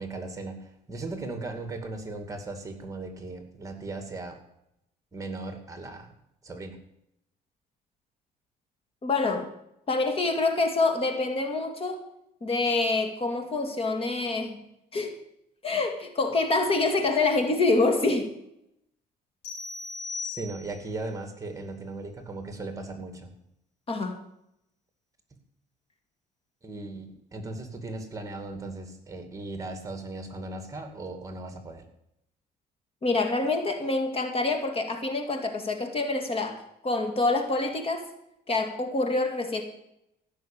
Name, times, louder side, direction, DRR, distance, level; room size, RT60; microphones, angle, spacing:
voice 1, 0.0-4.4 5.1-6.1 6.4-6.8 20.2-23.3 26.6-31.9, right 2 dB, 20° right, 5 dB, 2.4 m, -37 dB
voice 2, 9.0-9.5 9.9-12.0 12.4-14.6 14.9-15.2 15.6-18.3 23.9-24.2 33.0-38.0 38.5-39.6, left 3 dB, 35° left, 5 dB, 2.2 m, -26 dB
sound 1, 19.4-21.0, left 4 dB, 85° left, 5.1 m, -37 dB
15.5 x 6.5 x 9.0 m, 0.80 s
cardioid pair, 110°, 17 cm